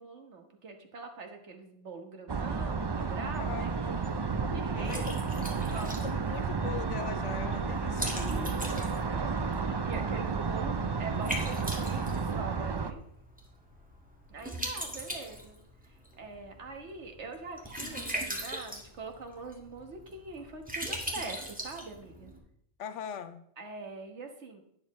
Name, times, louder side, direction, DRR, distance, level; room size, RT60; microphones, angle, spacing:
voice 1, 0.0-3.8 4.5-6.0 8.2-13.0 14.3-15.6 15.9-22.3 23.6-24.6, right 3 dB, 75° right, 4 dB, 1.7 m, -44 dB
sound 1, 2.3-12.9, right 5 dB, 45° right, 0.3 m, -32 dB
Liquid, 3.0-22.4, equal, 5° right, 1.8 m, -41 dB
voice 2, 3.3-3.7 4.7-5.5 6.0-8.5 22.8-23.4, left 8 dB, 85° left, 11 dB, 1.0 m, -41 dB
11.5 x 10.0 x 3.1 m, 0.72 s
omnidirectional pair, 1.2 m